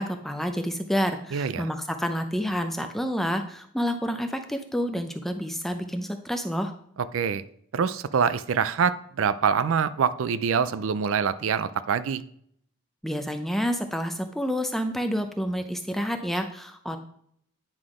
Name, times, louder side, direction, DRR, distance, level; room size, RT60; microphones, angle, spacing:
voice 1, 0.0-6.7 13.0-17.0, equal, ahead, 6 dB, 0.5 m, -29 dB
voice 2, 1.3-1.7 7.1-7.4 7.7-12.2, right 6 dB, 70° right, 14 dB, 0.4 m, -25 dB
9.7 x 3.8 x 4.9 m, 0.68 s
head